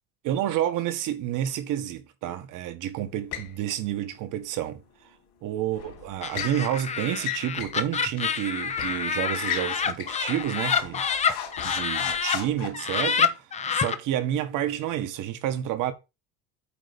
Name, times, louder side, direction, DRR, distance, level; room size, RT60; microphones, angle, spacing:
voice 1, 0.2-4.8 5.4-11.0 11.6-15.9, right 11 dB, 55° right, 1.5 m, -29 dB
sound 1, 3.3-3.5 5.7-6.6 7.2-7.8 8.2-8.3 8.8-9.0 9.4-12.7, left 10 dB, 65° left, 3.4 m, -35 dB
Laughter, 6.2-12.4 12.7-14.0, left 6 dB, 20° left, 0.6 m, -27 dB
8.7 x 3.8 x 5.3 m
cardioid pair, 145°, 38 cm